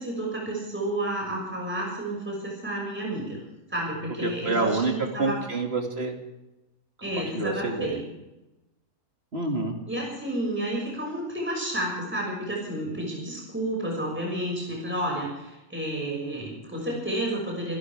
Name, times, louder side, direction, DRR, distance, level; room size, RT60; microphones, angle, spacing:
voice 1, 0.0-3.4 3.7-5.4 7.0-8.0 9.9-17.8, right 1 dB, 5° right, -2 dB, 6.2 m, -31 dB
voice 2, 4.2-4.9 5.2-6.2 7.3-8.0 9.3-9.7, right 3 dB, 45° right, 2 dB, 2.7 m, -27 dB
26.5 x 13.0 x 3.6 m, 0.96 s
omnidirectional pair, 1.6 m